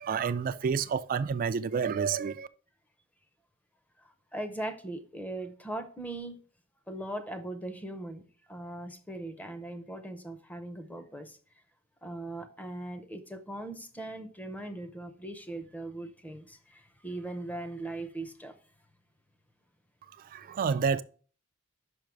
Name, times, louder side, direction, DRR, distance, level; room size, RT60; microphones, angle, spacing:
voice 1, 0.0-2.5 20.2-21.0, right 6 dB, 40° right, 0.3 m, -29 dB
voice 2, 4.0-6.4 6.9-11.4 12.0-18.6, right 1 dB, 5° left, 0.6 m, -40 dB
5.6 x 5.2 x 4.6 m
head